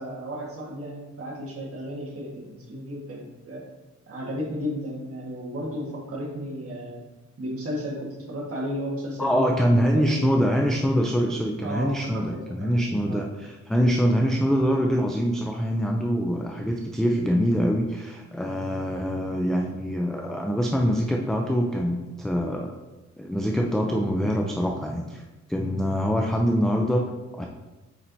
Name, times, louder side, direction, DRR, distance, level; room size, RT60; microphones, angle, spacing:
voice 1, 0.0-3.6 4.1-7.0 7.4-10.4 11.6-12.7 13.0-13.2, equal, 50° right, -3 dB, 1.6 m, -34 dB
voice 2, 9.2-22.7 23.2-25.2 25.5-27.5, equal, ahead, 1 dB, 0.3 m, -24 dB
8.4 x 4.4 x 2.7 m, 1.1 s
wide cardioid pair, 140°, 30 cm